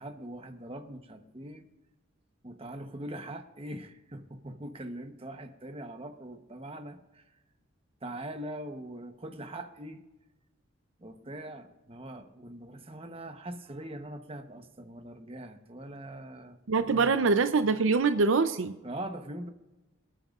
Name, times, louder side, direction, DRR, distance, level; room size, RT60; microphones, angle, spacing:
voice 1, 0.0-1.7 2.4-7.2 8.0-10.0 11.0-16.6 16.9-17.1 18.8-19.5, right 1 dB, 25° right, 6 dB, 1.0 m, -42 dB
voice 2, 16.7-18.7, right 4 dB, 70° right, 10 dB, 0.5 m, -24 dB
26.5 x 9.1 x 2.5 m, 1.0 s
head